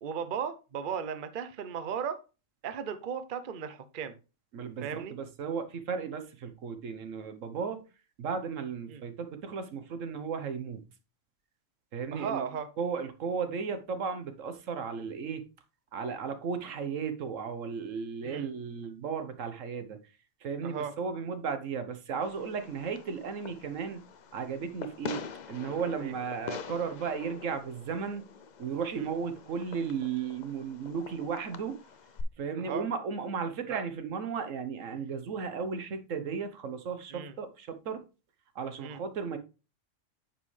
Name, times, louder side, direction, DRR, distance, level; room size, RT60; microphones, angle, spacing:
voice 1, 0.0-2.2 2.6-4.2 4.8-5.1 8.9-9.0 12.1-12.7 18.2-18.5 20.6-20.9 26.0-26.1 29.0-29.1 32.6-32.8 33.7-33.8 34.9-35.1 37.1-37.3 38.8-39.0, right 7 dB, 50° right, 0.8 m, -36 dB
voice 2, 4.5-7.8 8.2-10.8 11.9-12.5 12.8-15.4 15.9-20.0 20.4-24.0 24.3-25.2 25.5-28.3 28.6-31.8 32.4-38.0 38.5-39.4, right 6 dB, 75° right, 1.4 m, -35 dB
Fireworks, 22.2-32.2, left 6 dB, 50° left, 0.6 m, -45 dB
8.8 x 5.4 x 3.2 m
omnidirectional pair, 1.3 m